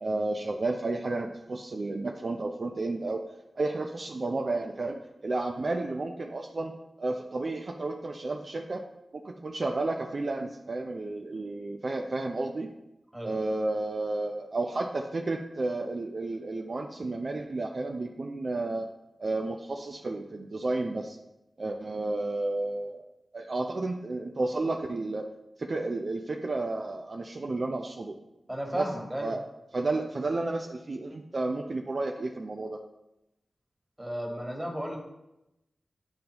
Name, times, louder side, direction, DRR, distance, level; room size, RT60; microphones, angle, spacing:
voice 1, 0.0-3.3 3.6-6.7 7.0-8.8 9.1-12.7 13.2-18.9 19.2-21.2 21.6-23.0 23.3-25.3 25.6-28.2 28.7-28.9 29.2-29.4 29.7-32.8, right 2 dB, 55° right, 2 dB, 0.5 m, -32 dB
voice 2, 28.5-29.3 34.0-35.0, equal, 15° right, -1 dB, 1.7 m, -34 dB
10.0 x 3.9 x 2.9 m, 0.91 s
cardioid pair, 50°, 0 cm